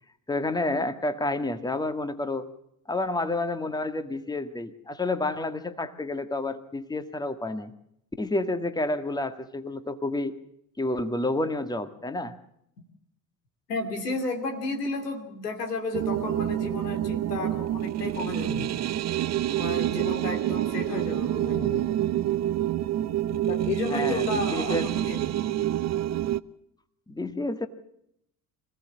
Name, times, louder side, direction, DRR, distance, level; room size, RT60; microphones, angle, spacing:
voice 1, 0.3-2.5 2.9-7.7 8.2-10.4 10.8-12.3 23.9-24.9 27.1-27.7, left 2 dB, 10° left, 10 dB, 1.7 m, -29 dB
voice 2, 13.7-19.1 19.5-21.9 23.5-25.3, left 3 dB, 80° left, 6 dB, 2.7 m, -33 dB
sound 1, 15.9-26.4, right 13 dB, 35° right, 0.7 m, -27 dB
26.0 x 16.5 x 7.4 m, 0.77 s
figure-of-eight pair, 55°, 47 cm